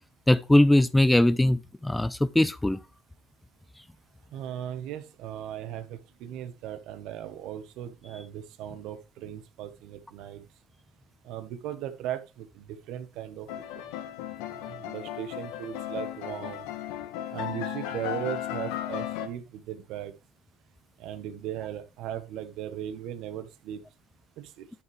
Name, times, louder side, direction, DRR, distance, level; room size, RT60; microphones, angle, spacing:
voice 1, 0.3-2.8, left 1 dB, 5° left, 0.5 m, -21 dB
voice 2, 4.3-10.4 11.2-13.5 14.7-16.7 17.3-20.1 21.0-23.8 24.4-24.7, right 11 dB, 65° right, 1.2 m, -37 dB
sound 1, 13.5-19.3, left 11 dB, 80° left, 1.4 m, -35 dB
10.5 x 6.9 x 3.4 m
supercardioid pair, 100°, 0 cm